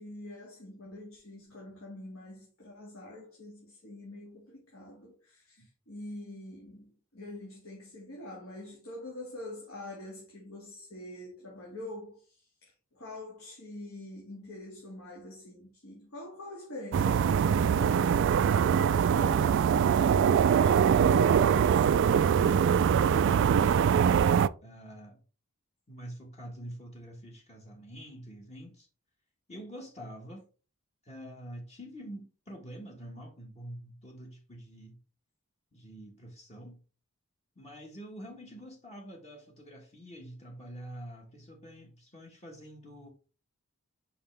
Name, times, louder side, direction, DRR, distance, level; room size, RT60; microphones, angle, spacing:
voice 1, 0.0-12.2 12.6-18.0, left 1 dB, 65° left, 2.1 m, -45 dB
sound 1, 16.9-24.5, right 7 dB, 55° right, 0.3 m, -23 dB
voice 2, 19.1-19.5 24.6-25.2 25.9-28.9 29.5-30.5 31.0-35.0 35.7-36.8 37.5-43.1, equal, 30° left, 1.4 m, -46 dB
5.7 x 5.5 x 3.3 m
head